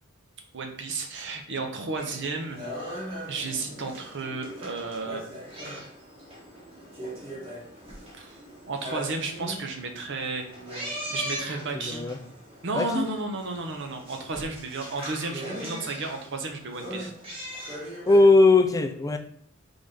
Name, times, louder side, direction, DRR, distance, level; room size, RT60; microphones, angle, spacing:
voice 1, 0.5-5.8 8.2-8.4 8.7-10.4 11.1-12.1 12.6-17.1, right 3 dB, 55° right, 0.8 m, -33 dB
sound 1, 2.0-18.5, equal, 25° right, 1.1 m, -40 dB
voice 2, 11.7-12.2 12.8-13.1 18.1-19.2, left 2 dB, 15° left, 0.4 m, -19 dB
3.9 x 3.5 x 3.4 m
head